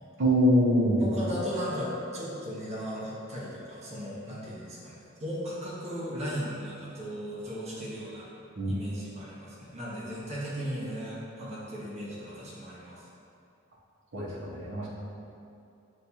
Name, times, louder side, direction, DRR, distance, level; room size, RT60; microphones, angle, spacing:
voice 1, 0.2-1.1 8.6-8.7 14.1-14.9, equal, 65° right, -5 dB, 0.8 m, -24 dB
voice 2, 1.0-8.3 8.6-13.0, equal, 35° right, -7 dB, 0.9 m, -36 dB
6.4 x 2.3 x 2.8 m, 2.6 s
head